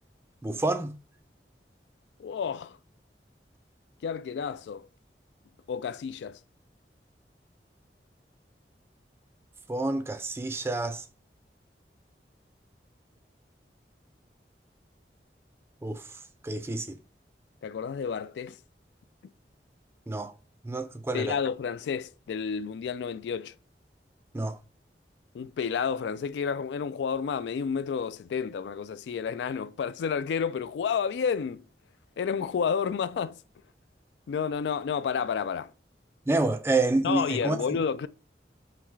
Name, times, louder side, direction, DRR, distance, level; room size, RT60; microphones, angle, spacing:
voice 1, 0.4-0.9 9.7-11.0 15.8-16.0 16.4-17.0 20.1-20.3 20.6-21.4 24.3-24.6 36.3-37.8, right 2 dB, 15° right, 0.3 m, -28 dB
voice 2, 2.2-2.8 4.0-4.9 5.7-6.4 17.6-18.6 21.1-23.5 25.3-31.6 32.2-33.4 34.3-35.7 37.0-38.1, left 6 dB, 85° left, 0.3 m, -30 dB
5.6 x 2.3 x 3.1 m
head